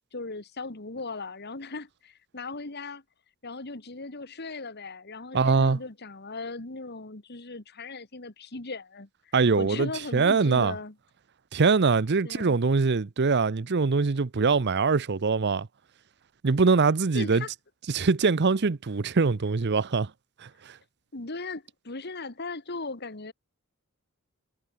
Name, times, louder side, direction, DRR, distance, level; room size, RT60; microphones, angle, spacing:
voice 1, 0.1-3.0 3.4-11.0 12.2-12.6 17.1-17.5 21.1-23.3, left 3 dB, 50° left, 2.0 m, -38 dB
voice 2, 5.3-5.8 9.3-10.7 11.5-15.7 16.4-17.4 17.9-20.1 20.4-20.5, right 4 dB, 50° right, 0.6 m, -23 dB
head